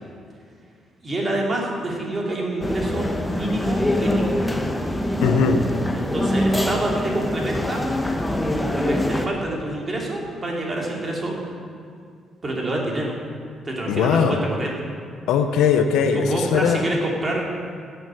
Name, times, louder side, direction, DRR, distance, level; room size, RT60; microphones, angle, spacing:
voice 1, 1.0-4.4 5.9-7.8 8.7-11.4 12.4-13.1 13.6-14.7 16.1-17.5, right 1 dB, 30° right, -2 dB, 3.0 m, -27 dB
sound 1, 2.6-9.3, left 1 dB, 10° left, 1.1 m, -24 dB
voice 2, 5.2-5.6 13.9-14.4 15.3-16.8, left 6 dB, 90° left, 6 dB, 0.7 m, -19 dB
15.5 x 6.9 x 6.4 m, 2.2 s
cardioid pair, 90°, 0 cm